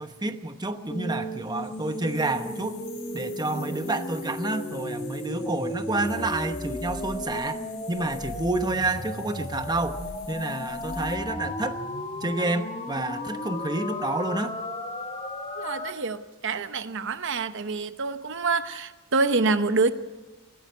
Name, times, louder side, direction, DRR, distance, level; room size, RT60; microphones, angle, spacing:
voice 1, 0.0-2.8 3.1-7.6 7.9-10.0 10.3-11.8 12.2-14.5, right 2 dB, 20° right, 8 dB, 0.9 m, -29 dB
sound 1, 0.9-15.9, left 1 dB, 25° left, 1.7 m, -34 dB
sound 2, 1.3-11.2, left 9 dB, 55° left, 5.5 m, -50 dB
voice 2, 15.6-19.9, right 3 dB, 55° right, 11 dB, 0.9 m, -26 dB
19.5 x 16.0 x 9.3 m, 1.1 s
head